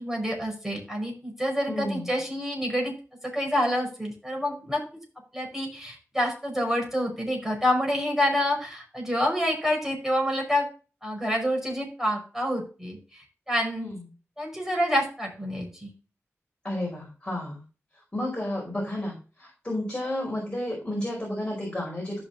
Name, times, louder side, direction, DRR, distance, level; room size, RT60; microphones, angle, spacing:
voice 1, 0.0-2.9 3.2-4.8 5.3-10.7 11.0-13.0 13.5-13.9 14.4-15.9, equal, 5° right, 0 dB, 5.6 m, -27 dB
voice 2, 1.7-2.1 13.8-14.1 16.6-17.6 17.9-22.2, left 1 dB, 20° left, -2 dB, 4.9 m, -32 dB
14.5 x 6.1 x 2.8 m, 0.35 s
wide cardioid pair, 80°, 5 cm